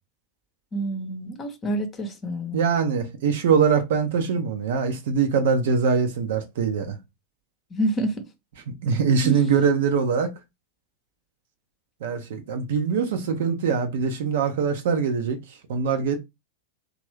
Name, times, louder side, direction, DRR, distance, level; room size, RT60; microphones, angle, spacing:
voice 1, 0.7-2.6 7.7-8.3 9.2-9.4, right 2 dB, 20° left, 0.8 m, -27 dB
voice 2, 2.5-7.0 8.8-10.3 12.0-15.4 15.7-16.2, right 6 dB, 55° right, 0.7 m, -23 dB
3.0 x 2.4 x 3.1 m
figure-of-eight pair, 90°, 0 cm